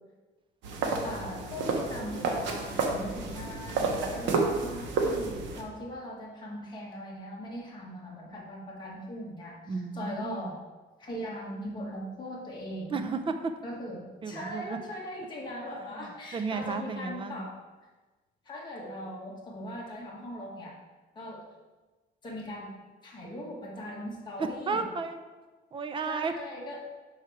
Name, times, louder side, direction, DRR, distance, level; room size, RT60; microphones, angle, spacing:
sound 1, 0.6-5.6, right 3 dB, 75° right, 1.1 m, -30 dB
voice 1, 1.0-10.6 11.0-13.0 13.6-17.6 18.4-20.7 21.1-21.4 22.2-22.7 23.0-24.9 26.0-26.8, equal, 25° left, -4 dB, 1.4 m, -40 dB
voice 2, 9.7-10.5 12.9-13.5 14.2-14.8 15.7-16.1 16.3-17.5 24.4-25.2 25.7-26.3, right 4 dB, 25° right, 8 dB, 0.5 m, -33 dB
6.1 x 4.7 x 4.5 m, 1.2 s
cardioid pair, 155°, 19 cm